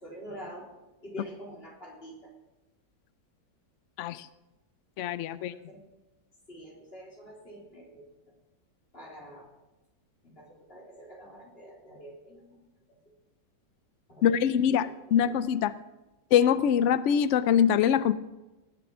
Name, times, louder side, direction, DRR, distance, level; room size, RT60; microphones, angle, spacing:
voice 1, 0.0-0.7 1.0-2.3 5.3-5.8 6.5-8.0 8.9-9.5 10.2-12.6 14.1-14.2 14.8-15.3, equal, 30° left, -2 dB, 3.7 m, -46 dB
voice 2, 5.0-5.5 14.2-15.7 16.3-18.1, left 9 dB, 90° left, 15 dB, 0.6 m, -24 dB
18.5 x 7.0 x 6.1 m, 1.0 s
omnidirectional pair, 1.9 m